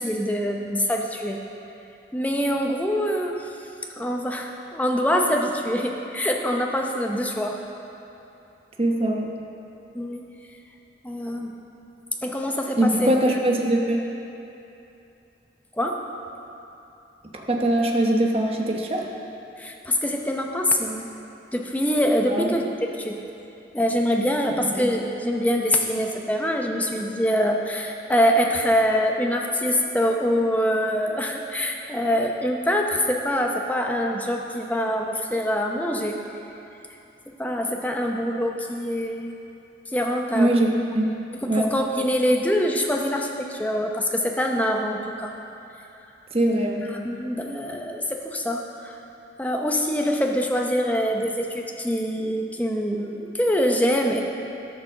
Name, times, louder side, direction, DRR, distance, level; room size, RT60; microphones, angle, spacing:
voice 1, 0.0-1.4 2.1-3.3 4.0-7.6 9.9-10.2 11.0-11.5 12.2-13.1 15.7-16.0 19.6-21.1 21.5-23.2 23.7-36.2 37.3-39.3 39.9-40.6 41.3-45.3 46.9-49.0 49.4-54.2, equal, 10° left, 1 dB, 0.7 m, -24 dB
voice 2, 8.8-9.3 12.8-14.0 17.5-19.1 22.3-22.5 24.7-24.8 40.3-41.1 41.5-41.7 46.3-46.9, right 1 dB, 30° right, 0 dB, 0.9 m, -22 dB
13.0 x 5.1 x 6.4 m, 2.8 s
head